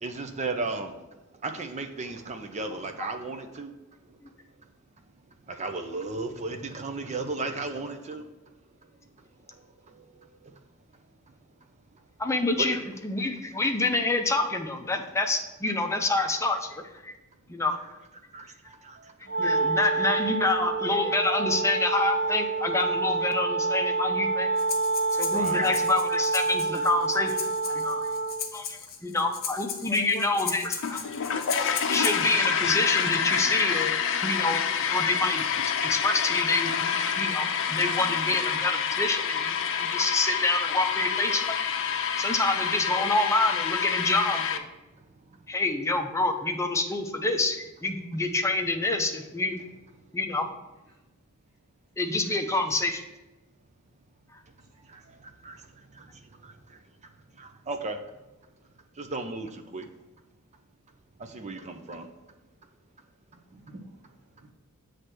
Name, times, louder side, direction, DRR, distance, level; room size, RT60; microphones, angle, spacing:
voice 1, 0.0-1.0 1.4-3.7 5.5-8.2 12.6-12.7 18.3-19.1 25.3-25.7 31.3-31.4 31.7-31.8 54.9-55.0 55.4-55.6 56.0-56.1 56.4-56.5 57.4-58.0 59.0-59.9 61.2-62.1, right 3 dB, 30° right, 6 dB, 0.5 m, -35 dB
voice 2, 12.2-17.2 17.5-17.8 19.4-24.5 25.1-27.4 27.7-28.1 28.5-31.1 31.8-34.6 34.9-35.4 35.8-41.8 42.2-44.7 45.5-49.6 50.1-50.5 52.0-53.0, left 2 dB, 15° left, 4 dB, 0.6 m, -27 dB
Wind instrument woodwind instrument, 19.2-28.5, right 3 dB, 80° right, 1.5 m, -27 dB
Breathing, 24.6-32.4, left 7 dB, 45° left, 0.9 m, -37 dB
sound 1, 30.8-44.6, left 7 dB, 60° left, 0.6 m, -27 dB
voice 3, 54.7-55.3 59.7-60.0 61.4-62.0 63.3-64.5, right 1 dB, 50° right, -7 dB, 1.4 m, -53 dB
8.0 x 3.3 x 6.0 m, 1.0 s
head